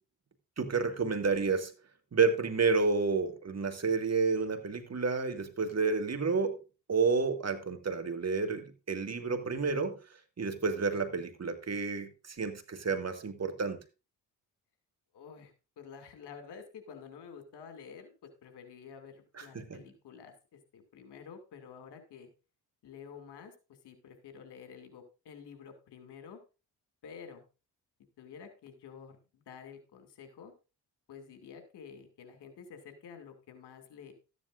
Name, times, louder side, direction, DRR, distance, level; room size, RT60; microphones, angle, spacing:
voice 1, 0.6-1.7 2.1-6.5 6.9-10.0 10.4-13.8 19.4-19.8, right 4 dB, 40° right, 2.0 m, -30 dB
voice 2, 15.1-22.3 22.8-26.4 27.0-27.4 28.2-30.5 31.1-34.1, left 6 dB, 75° left, 2.6 m, -50 dB
13.5 x 10.0 x 2.5 m
supercardioid pair, 55°, 40 cm